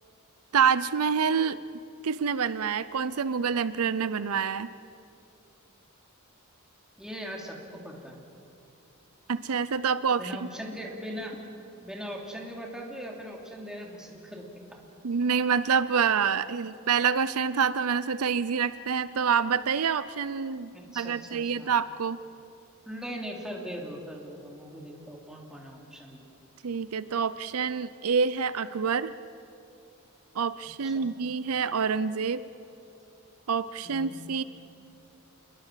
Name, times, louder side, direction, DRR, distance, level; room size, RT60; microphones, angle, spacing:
voice 1, 0.5-1.6 2.0-4.7 9.3-10.5 15.0-22.2 26.6-29.1 30.3-32.4 33.5-34.4, right 6 dB, 80° right, 15 dB, 0.6 m, -27 dB
voice 2, 7.0-8.2 10.2-11.4 11.8-14.8 20.7-21.7 22.9-26.2 30.8-31.1 33.8-34.2, equal, 5° right, -1 dB, 3.0 m, -40 dB
27.5 x 21.5 x 7.5 m, 2.7 s
head